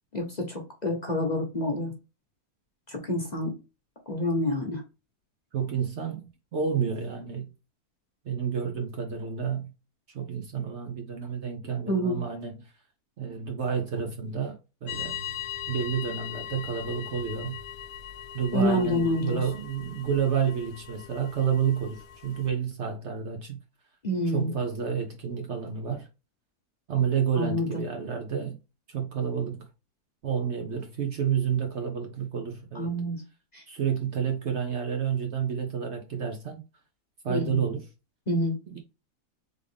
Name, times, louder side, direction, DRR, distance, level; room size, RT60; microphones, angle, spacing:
voice 1, 0.1-1.9 2.9-3.5 4.1-4.8 11.9-12.2 18.5-19.4 24.0-24.5 27.4-27.8 32.7-33.2 33.5-33.6 37.3-37.6 38.3-38.6, equal, 35° left, 0.9 m, -27 dB
voice 2, 5.5-6.2 6.5-7.5 8.2-9.7 10.1-12.7 13.2-15.2 15.7-17.6 18.3-23.6 24.3-26.1 26.9-28.6 28.9-29.7 30.2-32.9 33.7-36.6 37.2-37.8 38.7-38.8, right 7 dB, 55° right, 0.9 m, -30 dB
sound 1, 14.9-22.5, left 10 dB, 70° left, 1.2 m, -40 dB
3.7 x 3.6 x 3.4 m
omnidirectional pair, 1.6 m